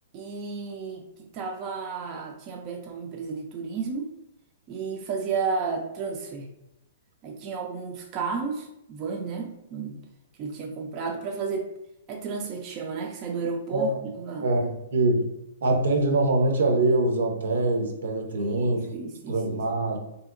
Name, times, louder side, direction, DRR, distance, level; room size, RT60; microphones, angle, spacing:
voice 1, 0.1-4.1 4.7-6.5 7.2-10.0 10.4-11.7 12.1-14.5 18.3-19.7, right 5 dB, 30° right, 1 dB, 0.3 m, -33 dB
voice 2, 14.4-15.3 15.6-18.8 19.3-20.0, right 2 dB, 80° right, 3 dB, 0.6 m, -24 dB
2.8 x 2.8 x 2.4 m, 0.85 s
hypercardioid pair, 155°, 0 cm